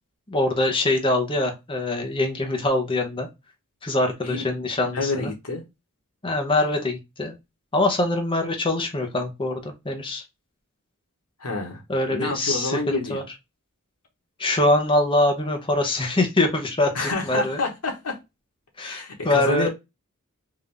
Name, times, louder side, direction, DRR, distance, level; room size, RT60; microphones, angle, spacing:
voice 1, 0.3-3.3 3.8-5.3 6.2-7.4 7.7-10.2 11.9-13.2 14.4-17.6 18.8-19.7, left 2 dB, 25° left, 0.8 m, -23 dB
voice 2, 4.2-4.6 4.9-5.6 11.4-11.8 12.1-13.2 16.9-18.2 18.8-19.7, left 3 dB, 90° left, 1.3 m, -28 dB
3.7 x 2.7 x 3.4 m
head